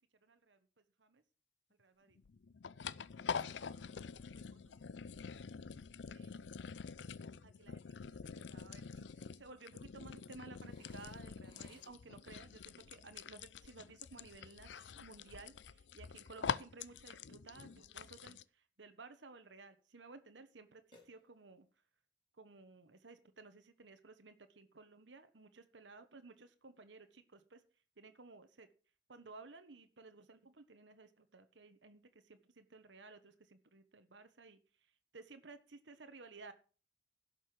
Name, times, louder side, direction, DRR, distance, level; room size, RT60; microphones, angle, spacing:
voice 1, 0.2-0.6 1.0-1.2 1.8-2.2 3.3-4.1 4.5-5.4 6.0-6.4 7.4-21.7 22.4-27.6 28.0-28.7 29.1-36.5, right 3 dB, 80° right, 9 dB, 1.2 m, -57 dB
sound 1, 2.2-18.4, left 6 dB, 80° left, 0.5 m, -46 dB
Burping eructation, 10.5-12.2 20.9-21.7, left 2 dB, 25° left, 4.7 m, -66 dB
11.5 x 6.6 x 7.6 m, 0.38 s
head